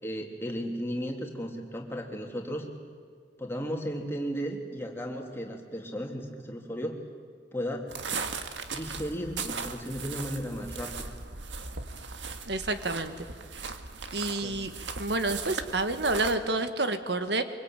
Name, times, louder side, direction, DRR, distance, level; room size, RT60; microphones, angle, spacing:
voice 1, 0.0-2.7 3.4-7.0 7.5-7.9 8.7-11.1 14.4-14.6, equal, 15° left, 1 dB, 2.9 m, -35 dB
sound 1, 7.9-16.4, right 5 dB, 85° right, 1.7 m, -38 dB
voice 2, 12.5-13.3 14.1-14.7 15.0-17.4, right 2 dB, 65° right, 9 dB, 1.5 m, -29 dB
25.0 x 24.0 x 9.0 m, 2.1 s
head